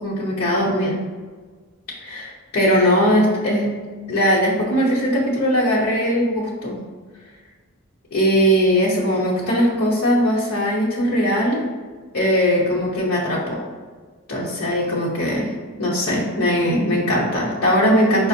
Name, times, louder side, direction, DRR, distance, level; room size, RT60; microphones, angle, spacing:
voice 1, 0.0-0.9 2.0-3.7 4.1-6.8 8.1-11.7 12.1-13.6 14.3-15.5 15.8-18.3, equal, 80° left, -8 dB, 0.8 m, -20 dB
4.9 x 2.0 x 2.6 m, 1.4 s
head